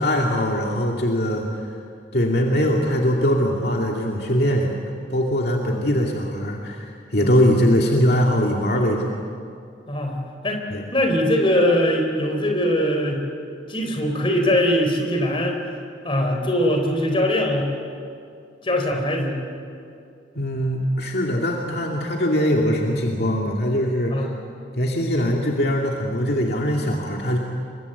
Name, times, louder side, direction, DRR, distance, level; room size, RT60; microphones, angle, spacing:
voice 1, 0.0-1.5 2.1-4.8 5.1-9.1 10.7-10.8 20.3-24.3 24.8-27.4, equal, 55° left, -1 dB, 2.3 m, -21 dB
voice 2, 9.9-10.6 10.9-13.2 13.7-15.6 16.0-17.7 18.6-19.4 24.1-24.3, left 1 dB, 30° left, 2 dB, 4.0 m, -21 dB
27.5 x 23.5 x 8.1 m, 2.4 s
head